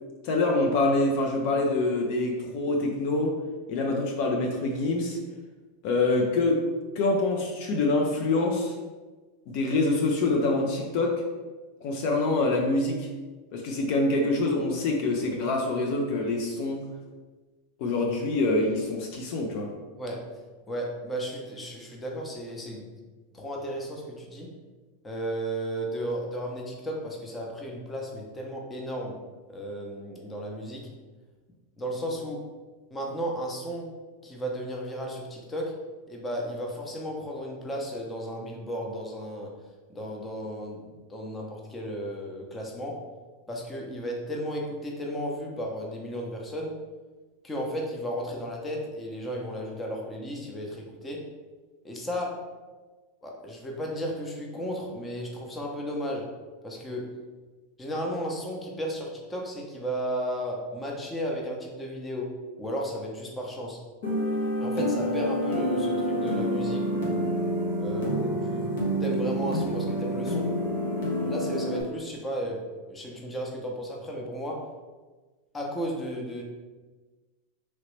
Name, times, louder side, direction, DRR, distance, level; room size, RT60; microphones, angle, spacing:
voice 1, 0.2-3.4 3.7-5.2 5.8-6.6 7.0-8.7 9.5-11.2 11.8-13.1 13.5-16.8 17.8-19.7, left 2 dB, 55° left, 1 dB, 0.5 m, -25 dB
voice 2, 20.0-20.3 20.7-22.9 23.3-24.5 25.0-29.2 29.5-30.9 31.8-32.4 32.9-33.9 34.2-35.8 36.1-39.5 39.9-43.0 43.5-46.8 47.4-51.3 51.8-52.4 53.2-56.3 56.6-57.2 57.8-62.3 62.6-63.8 64.6-67.3 67.8-70.5 71.2-74.7 75.5-76.4, equal, 15° left, 0 dB, 0.7 m, -34 dB
sound 1, 64.0-71.8, equal, 75° left, 1.1 m, -28 dB
3.0 x 2.9 x 3.2 m, 1.3 s
hypercardioid pair, 115°, 0 cm